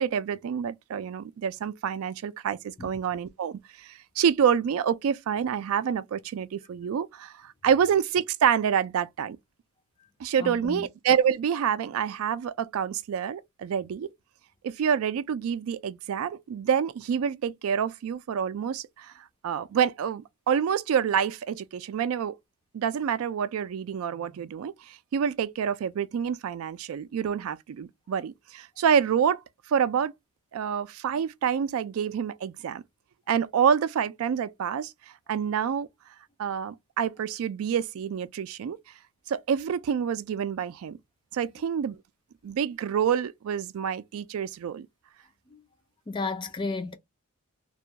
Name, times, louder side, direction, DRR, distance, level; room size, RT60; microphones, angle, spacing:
voice 1, 0.0-9.4 10.2-14.1 14.6-19.1 19.4-22.3 22.7-29.4 29.7-30.1 30.5-32.8 33.3-34.9 35.3-35.9 36.4-38.8 39.3-41.0 41.3-42.0 42.4-44.9, right 8 dB, 70° right, 0.3 m, -27 dB
voice 2, 10.3-10.9 45.5-45.6 46.1-46.9, left 3 dB, 20° left, 0.4 m, -33 dB
2.3 x 2.2 x 2.7 m
head